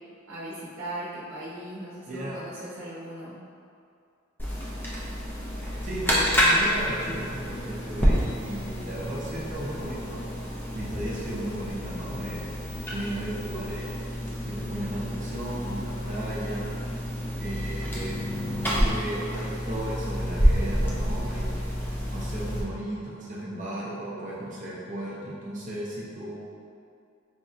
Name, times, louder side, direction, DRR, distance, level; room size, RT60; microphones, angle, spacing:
voice 1, 0.3-3.4, right 1 dB, 85° right, -8 dB, 0.8 m, -38 dB
voice 2, 2.1-2.4 5.8-10.2 10.7-12.5 12.9-14.0 14.4-16.8 17.4-18.2 18.7-21.6 22.1-26.5, right 1 dB, 40° right, -6 dB, 0.7 m, -35 dB
sound 1, 4.4-22.6, equal, 10° left, 0.5 m, -28 dB
5.1 x 2.7 x 2.4 m, 2.4 s
head